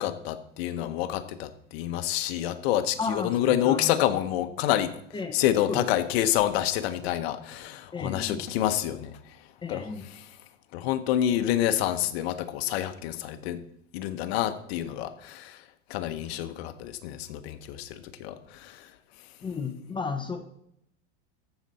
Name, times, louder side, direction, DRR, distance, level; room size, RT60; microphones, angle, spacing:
voice 1, 0.0-5.0 5.3-9.2 9.7-9.9 10.7-13.6 13.9-15.6 15.9-18.9, left 12 dB, 65° left, 10 dB, 1.1 m, -28 dB
voice 2, 3.0-4.0 5.1-5.4 5.7-5.9 7.9-8.4 9.6-10.1 19.4-20.4, left 4 dB, 15° left, 8 dB, 0.8 m, -33 dB
14.0 x 6.7 x 4.2 m, 0.74 s
supercardioid pair, 135°, 34 cm